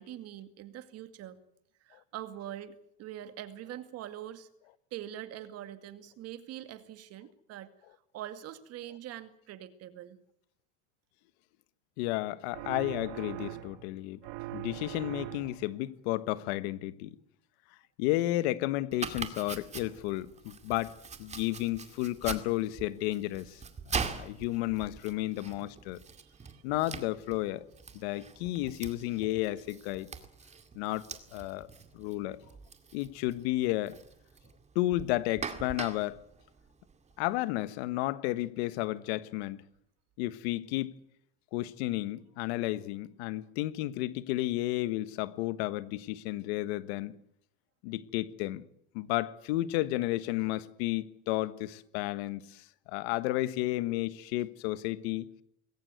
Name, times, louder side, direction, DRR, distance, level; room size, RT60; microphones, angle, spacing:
voice 1, 0.0-1.4 1.8-4.5 4.9-7.7 8.1-10.2 26.1-26.6, right 12 dB, 50° right, 2.3 m, -44 dB
voice 2, 12.0-14.2 14.5-17.1 18.0-20.9 21.2-26.0 26.6-27.7 27.9-30.1 30.7-31.0 31.3-31.7 31.9-32.4 32.9-34.0 34.7-36.2 37.2-39.6 40.2-40.9 41.5-47.1 47.8-48.6 48.9-55.3, left 17 dB, 85° left, 1.4 m, -32 dB
sound 1, 12.5-13.9 14.2-15.7, right 16 dB, 75° right, 1.4 m, -41 dB
Domestic sounds home sounds, 18.9-37.4, right 5 dB, 20° right, 2.3 m, -43 dB
21.0 x 17.5 x 9.3 m
cardioid pair, 130°, 31 cm